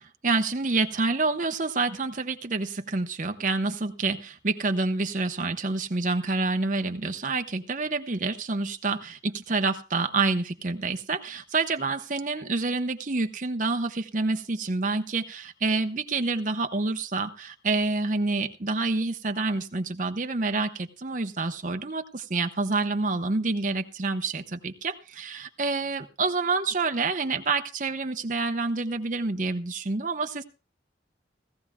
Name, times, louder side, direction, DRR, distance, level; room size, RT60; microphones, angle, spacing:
voice 1, 0.2-30.4, right 3 dB, 45° right, 7 dB, 0.9 m, -28 dB
17.5 x 14.5 x 2.3 m, 0.31 s
head